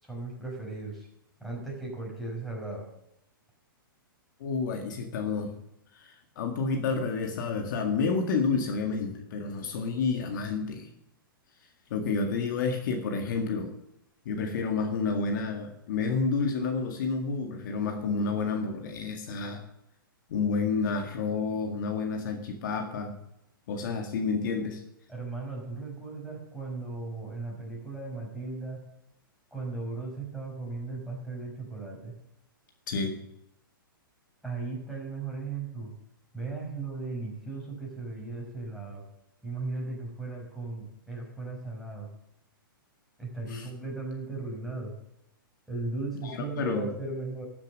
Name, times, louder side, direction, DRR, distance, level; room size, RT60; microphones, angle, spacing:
voice 1, 0.0-1.1 1.4-2.9 25.1-28.8 29.5-32.1 34.4-35.9 36.3-39.0 39.4-42.1 43.2-44.9 45.7-47.4, right 3 dB, ahead, -4 dB, 5.4 m, -36 dB
voice 2, 4.4-5.6 5.9-10.9 11.9-13.7 14.3-19.6 20.3-23.1 23.7-24.8 32.9-33.2 43.5-43.7 46.2-46.9, left 4 dB, 60° left, 4 dB, 1.9 m, -30 dB
13.5 x 7.4 x 6.5 m, 0.82 s
hypercardioid pair, 130°, 12 cm